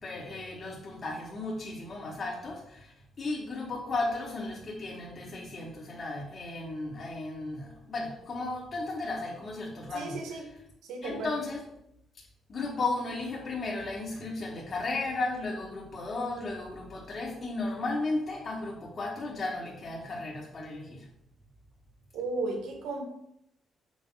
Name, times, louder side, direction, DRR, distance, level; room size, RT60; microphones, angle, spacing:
voice 1, 0.0-10.2 11.0-11.6 12.5-21.1, left 2 dB, 45° left, -2 dB, 3.1 m, -35 dB
voice 2, 9.9-10.4 10.8-11.3 22.1-23.0, right 3 dB, 90° right, 1 dB, 2.0 m, -34 dB
8.1 x 3.6 x 6.6 m, 0.77 s
cardioid pair, 90°, 0 cm